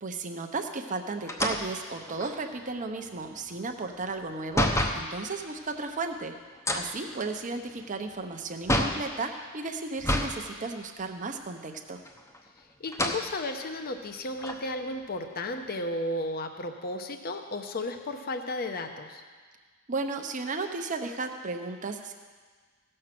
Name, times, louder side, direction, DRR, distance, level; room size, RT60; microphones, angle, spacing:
voice 1, 0.0-6.4 6.7-12.0 19.9-22.1, right 3 dB, 35° right, 5 dB, 0.8 m, -34 dB
sound 1, 1.3-5.1 6.5-9.1 10.0-10.4 10.8-10.9 12.0-12.5 12.9-13.3 13.9-14.0 14.4-15.8, left 1 dB, 15° left, 0.8 m, -30 dB
voice 2, 12.8-19.2, left 2 dB, 45° left, 6 dB, 0.8 m, -34 dB
16.0 x 6.5 x 6.0 m, 1.5 s
head